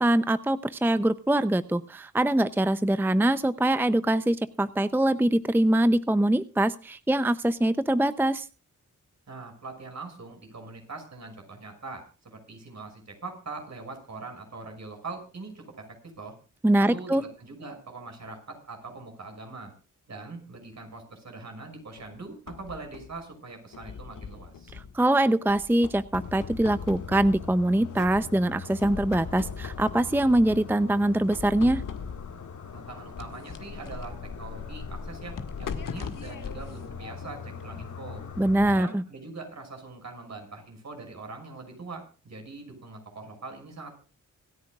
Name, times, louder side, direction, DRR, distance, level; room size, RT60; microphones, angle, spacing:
voice 1, 0.0-8.4 16.6-17.2 24.7-31.8 38.4-39.0, right 1 dB, 5° right, 14 dB, 0.6 m, -23 dB
voice 2, 9.3-15.9 16.2-16.4 16.8-19.7 20.1-24.7 32.7-38.2 38.7-43.9, right 3 dB, 55° right, 4 dB, 6.1 m, -42 dB
sound 1, 22.0-23.2 23.7-25.1 25.5-27.7 28.0-28.5 28.8-30.8 31.3-32.4 33.2-37.7, left 6 dB, 85° left, 1.9 m, -40 dB
sound 2, 26.1-38.8, left 5 dB, 65° left, 1.8 m, -41 dB
26.5 x 10.0 x 2.4 m, 0.36 s
cardioid pair, 75°, 32 cm